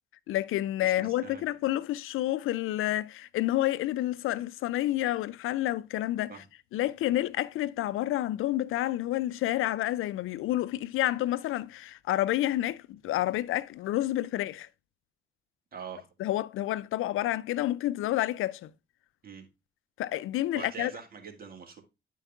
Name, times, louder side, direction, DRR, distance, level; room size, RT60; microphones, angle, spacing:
voice 1, 0.3-6.3 6.7-14.7 16.2-18.7 20.0-20.9, left 14 dB, 85° left, 0.4 m, -29 dB
voice 2, 0.8-1.4 6.3-6.4 15.7-16.1 19.2-19.5 20.5-21.8, right 6 dB, 45° right, 2.0 m, -43 dB
10.5 x 4.6 x 3.5 m
cardioid pair, 105°, 21 cm